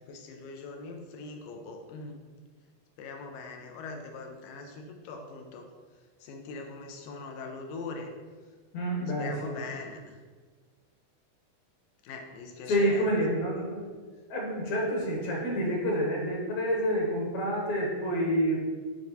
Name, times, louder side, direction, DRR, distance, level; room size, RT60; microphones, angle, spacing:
voice 1, 0.1-2.2 3.0-5.7 6.2-8.1 9.2-10.2 12.0-13.3, left 3 dB, 85° left, 3 dB, 2.5 m, -41 dB
voice 2, 8.7-9.6 12.7-13.9 14.3-18.6, equal, 65° left, -1 dB, 2.2 m, -28 dB
9.1 x 3.4 x 4.1 m, 1.5 s
omnidirectional pair, 3.8 m